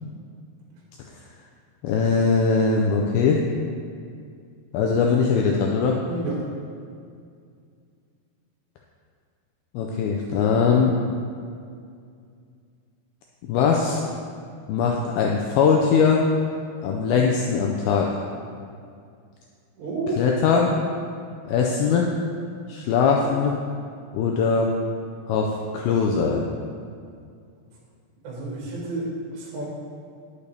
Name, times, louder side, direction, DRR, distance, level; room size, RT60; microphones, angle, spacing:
voice 1, 1.8-3.4 4.7-6.0 9.7-11.0 13.5-14.1 14.7-16.2 16.8-18.1 20.2-20.7 21.5-22.1 22.7-23.5 24.1-24.7 25.3-26.5, left 5 dB, 90° left, 0 dB, 2.1 m, -21 dB
voice 2, 6.0-6.4 19.8-20.2 28.2-29.7, right 2 dB, 55° right, -4 dB, 2.5 m, -30 dB
11.0 x 6.7 x 3.3 m, 2.3 s
omnidirectional pair, 4.9 m